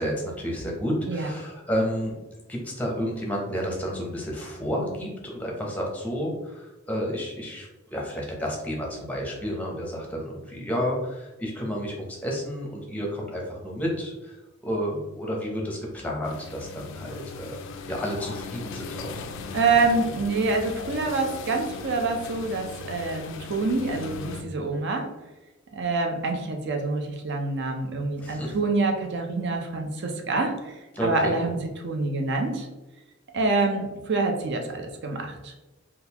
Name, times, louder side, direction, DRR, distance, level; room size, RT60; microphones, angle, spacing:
voice 1, 0.0-2.2 2.5-14.4 14.6-17.6 17.9-19.2 28.2-28.6 30.9-31.4, equal, 5° left, -2 dB, 0.7 m, -31 dB
sound 1, 16.2-24.4, left 4 dB, 65° left, 0.3 m, -38 dB
voice 2, 19.5-25.1 25.7-31.6 31.8-32.7 33.3-35.5, right 3 dB, 55° right, 4 dB, 0.5 m, -26 dB
3.7 x 2.4 x 2.8 m, 1.1 s
head